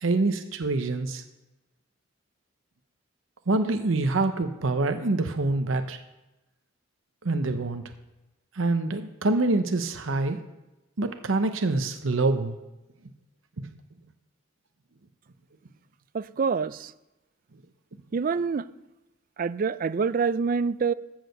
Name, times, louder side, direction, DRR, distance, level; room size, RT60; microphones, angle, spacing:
voice 1, 0.0-1.2 3.5-6.0 7.2-7.8 8.6-10.4 11.0-12.6 13.6-13.7, right 2 dB, 80° right, 8 dB, 0.8 m, -25 dB
voice 2, 16.1-16.9 18.1-18.7 19.4-20.9, right 5 dB, 45° right, 17 dB, 0.4 m, -26 dB
14.5 x 4.9 x 6.6 m, 0.98 s
head